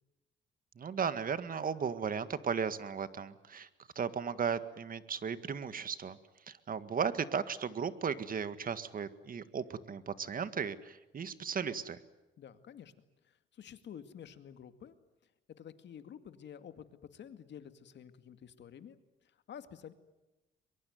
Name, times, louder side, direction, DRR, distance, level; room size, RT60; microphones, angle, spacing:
voice 1, 0.8-3.7 4.0-6.2 6.5-12.0, right 6 dB, 45° right, 13 dB, 1.8 m, -36 dB
voice 2, 12.4-12.9 13.2-14.9 15.5-19.0 19.2-19.9, left 8 dB, 65° left, 10 dB, 2.2 m, -50 dB
23.5 x 22.5 x 9.4 m, 1.0 s
cardioid pair, 90°, 20 cm